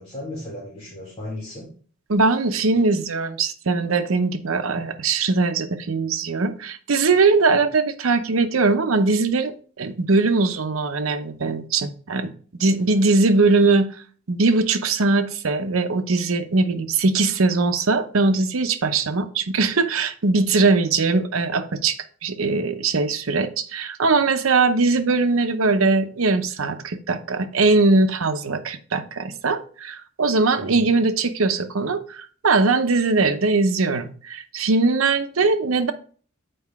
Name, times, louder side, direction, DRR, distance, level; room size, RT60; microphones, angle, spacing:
voice 1, 0.0-1.7 30.6-30.9, left 1 dB, 30° left, -6 dB, 2.0 m, -35 dB
voice 2, 2.1-12.3 12.6-13.9 14.3-35.9, right 3 dB, 80° right, 9 dB, 0.7 m, -21 dB
7.8 x 4.8 x 3.5 m, 0.43 s
head